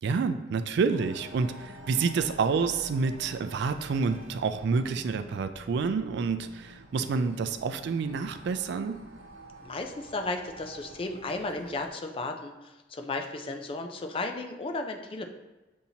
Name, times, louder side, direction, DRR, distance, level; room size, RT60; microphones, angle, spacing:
voice 1, 0.0-9.0, right 5 dB, 60° right, 10 dB, 0.3 m, -28 dB
sound 1, 0.9-11.9, right 1 dB, 85° right, 0.7 m, -48 dB
voice 2, 9.6-15.3, left 2 dB, 30° left, 5 dB, 0.4 m, -34 dB
7.1 x 2.7 x 2.8 m, 1.1 s
head